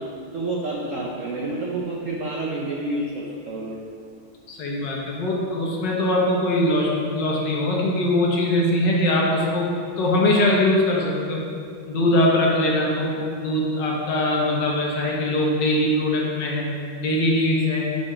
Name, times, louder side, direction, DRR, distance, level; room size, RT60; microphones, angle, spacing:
voice 1, 0.0-3.8, right 2 dB, 70° right, -2 dB, 0.7 m, -29 dB
voice 2, 4.5-9.7 10.0-11.4 11.9-16.7 17.0-17.9, left 1 dB, 65° left, -2 dB, 1.7 m, -22 dB
7.6 x 4.3 x 5.0 m, 2.3 s
omnidirectional pair, 2.2 m